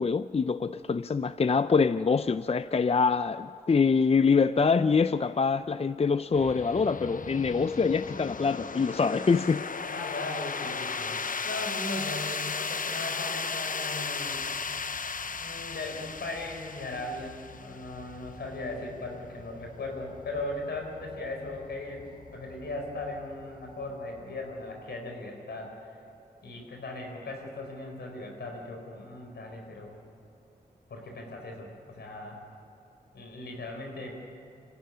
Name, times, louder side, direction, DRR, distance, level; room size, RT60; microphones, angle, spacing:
voice 1, 0.0-9.6, left 5 dB, 35° left, 0.5 m, -25 dB
sound 1, 6.3-25.0, left 5 dB, 55° left, 0.9 m, -37 dB
voice 2, 9.9-11.2 11.4-14.4 15.4-26.0 26.4-30.0 30.9-32.4 33.1-34.2, left 2 dB, 80° left, 4.7 m, -38 dB
26.0 x 15.0 x 9.8 m
cardioid pair, 45°, 17 cm